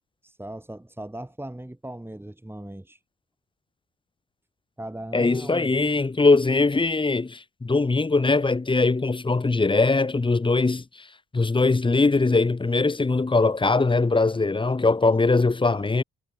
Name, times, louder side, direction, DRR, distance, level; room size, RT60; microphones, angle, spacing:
voice 1, 0.2-3.0 4.8-5.7, right 1 dB, 5° right, 4.8 m, -38 dB
voice 2, 5.1-10.8 11.3-16.0, left 3 dB, 15° left, 1.0 m, -21 dB
cardioid pair, 90°, 30 cm